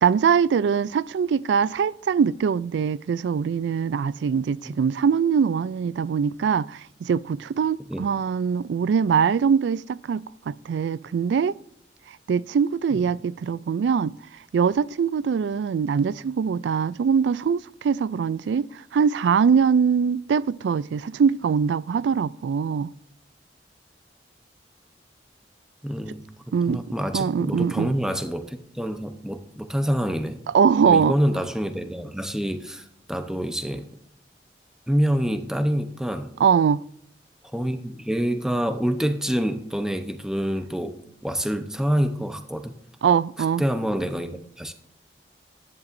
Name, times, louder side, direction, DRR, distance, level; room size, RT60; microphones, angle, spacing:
voice 1, 0.0-11.6 12.3-14.1 14.5-22.9 26.5-26.8 27.1-27.9 30.5-31.1 36.4-36.8 43.0-43.6, right 6 dB, 85° right, 0.3 m, -22 dB
voice 2, 25.8-26.2 26.7-30.4 30.8-33.9 34.9-36.3 37.5-41.0 41.2-42.7 43.6-44.7, equal, 5° right, 0.7 m, -26 dB
11.0 x 10.5 x 2.6 m
head